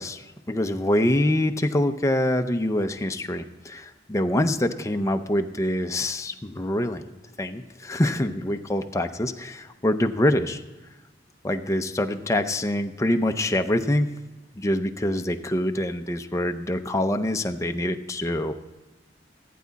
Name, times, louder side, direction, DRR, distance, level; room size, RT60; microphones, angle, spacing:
voice 1, 0.0-7.0 7.4-10.6 11.4-14.2 14.6-18.5, left 1 dB, 15° left, 6 dB, 0.5 m, -25 dB
14.0 x 9.2 x 4.0 m, 1.1 s
head